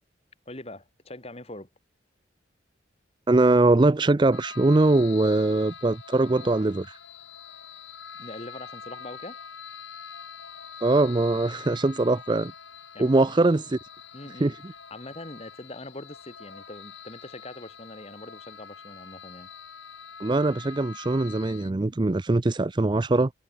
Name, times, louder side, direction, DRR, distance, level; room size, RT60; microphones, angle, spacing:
voice 1, 0.5-1.7 8.2-9.4 12.9-13.2 14.1-14.5 14.9-19.5, left 1 dB, 35° left, 3.2 m, -42 dB
voice 2, 3.3-6.9 10.8-12.5 13.0-13.8 14.4-14.5 20.2-23.3, right 2 dB, 25° right, 0.4 m, -22 dB
sound 1, 4.3-21.7, left 6 dB, 85° left, 3.1 m, -45 dB
head